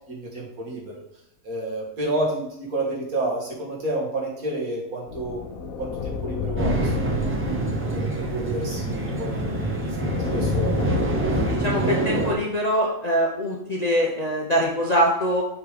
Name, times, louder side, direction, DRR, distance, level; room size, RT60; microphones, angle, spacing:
voice 1, 0.1-1.0 1.4-7.4 7.9-11.4 11.8-11.9, right 1 dB, 65° right, -3 dB, 2.1 m, -30 dB
sound 1, 5.1-11.6, left 5 dB, 70° left, 1.0 m, -31 dB
sound 2, 6.6-12.3, right 2 dB, 10° right, 0.6 m, -26 dB
voice 2, 11.5-15.4, equal, 35° left, -2 dB, 0.8 m, -23 dB
6.6 x 3.7 x 4.9 m, 0.77 s
omnidirectional pair, 1.7 m